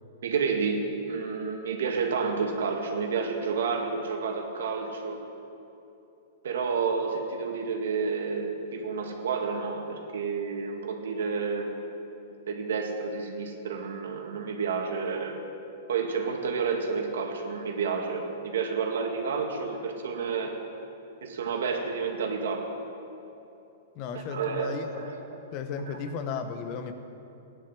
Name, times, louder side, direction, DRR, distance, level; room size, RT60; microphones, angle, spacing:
voice 1, 0.2-5.2 6.4-11.8 12.5-15.4 15.9-20.5 21.2-22.7 24.1-25.4 25.9-26.0, right 5 dB, 80° right, 2 dB, 2.1 m, -30 dB
voice 2, 23.9-25.1 25.5-26.9, left 6 dB, 30° left, 8 dB, 1.0 m, -35 dB
15.0 x 10.5 x 7.6 m, 2.8 s
supercardioid pair, 170°, 0 cm